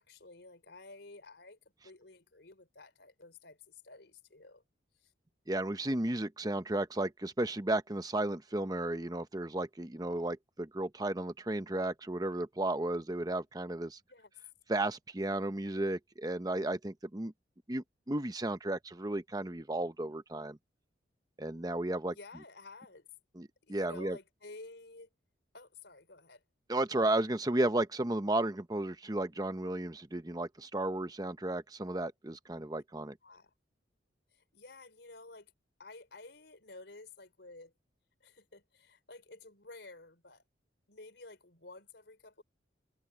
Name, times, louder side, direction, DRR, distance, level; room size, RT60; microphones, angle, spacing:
voice 1, 0.0-1.6 1.8-4.6 5.0-5.1 14.1-14.3 22.1-23.1 23.6-25.1 25.5-26.4 33.2-33.5 34.3-35.5 35.8-37.7 38.2-40.4 40.9-42.4, left 3 dB, 75° left, 3.9 m, -52 dB
voice 2, 5.5-14.0 14.7-17.3 17.7-20.6 21.4-22.1 23.4-24.2 26.7-33.2, right 1 dB, 20° right, 0.9 m, -34 dB
open air
head